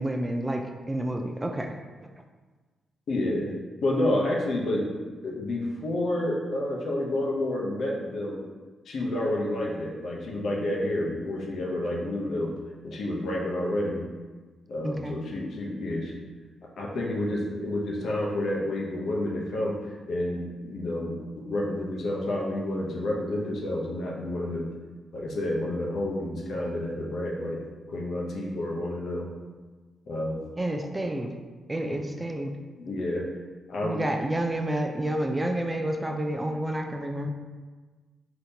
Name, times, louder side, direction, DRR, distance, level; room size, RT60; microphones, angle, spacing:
voice 1, 0.0-1.7 14.8-15.2 30.6-31.3 31.7-32.5 33.8-37.3, right 1 dB, 20° right, 5 dB, 0.3 m, -29 dB
voice 2, 3.1-3.5 3.8-4.9 5.2-8.4 8.9-12.5 12.8-14.0 14.7-16.2 16.8-19.8 20.1-24.7 25.1-27.6 27.9-29.3 30.1-30.4 30.8-30.9 31.9-32.0 32.8-33.3 33.7-34.0, left 1 dB, 65° left, -2 dB, 0.7 m, -29 dB
3.6 x 2.8 x 2.7 m, 1.3 s
cardioid pair, 65°, 0 cm